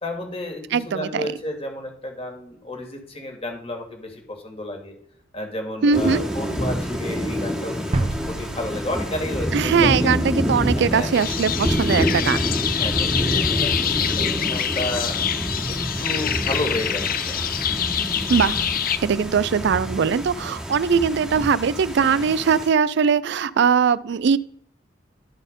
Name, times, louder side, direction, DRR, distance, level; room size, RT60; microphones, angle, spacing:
voice 1, 0.0-4.9 5.3-10.1 10.8-11.1 12.7-15.2 15.7-17.5 22.0-22.3, left 1 dB, 35° left, 3 dB, 2.2 m, -32 dB
voice 2, 0.7-1.3 5.8-6.3 9.5-12.5 18.3-18.6 19.0-24.4, right 6 dB, 65° right, 18 dB, 0.4 m, -20 dB
Thunder / Rain, 5.9-22.7, equal, 5° right, 1.6 m, -27 dB
sound 1, 7.9-10.4, right 2 dB, 35° right, 0.7 m, -29 dB
sound 2, 11.1-19.0, left 9 dB, 50° left, 0.6 m, -25 dB
11.5 x 4.2 x 5.2 m, 0.67 s
head